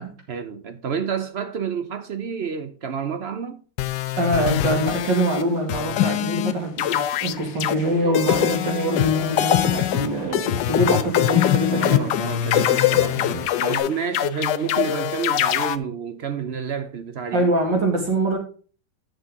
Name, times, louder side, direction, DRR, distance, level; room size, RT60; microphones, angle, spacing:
voice 1, 0.3-3.6 11.7-13.3 13.6-17.5, right 6 dB, 60° right, 0.6 m, -29 dB
sound 1, 3.8-5.4 5.7-6.5 6.8-7.7 8.1-15.8, left 12 dB, 75° left, 1.2 m, -22 dB
voice 2, 4.2-12.1 17.3-18.4, right 1 dB, 75° right, 3.0 m, -24 dB
sound 2, 7.4-13.8, right 1 dB, 10° right, 3.4 m, -37 dB
11.0 x 6.5 x 3.6 m
omnidirectional pair, 2.0 m